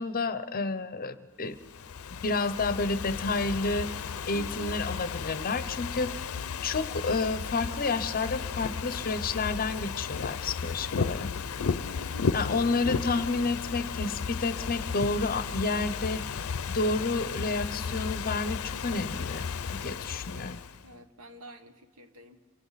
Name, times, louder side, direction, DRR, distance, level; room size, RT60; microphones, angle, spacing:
voice 1, 0.0-1.6 2.2-3.9 4.2-6.1 6.6-11.3 12.3-20.6, left 3 dB, 45° left, 12 dB, 0.8 m, -30 dB
Ocean / Fireworks, 1.6-20.8, left 5 dB, 80° left, 0.5 m, -34 dB
voice 2, 4.3-4.8 6.3-6.6 10.2-11.4 11.8-12.3 19.8-20.1 20.8-22.4, right 1 dB, 80° right, 7 dB, 1.4 m, -50 dB
27.5 x 23.5 x 4.1 m, 1.4 s
head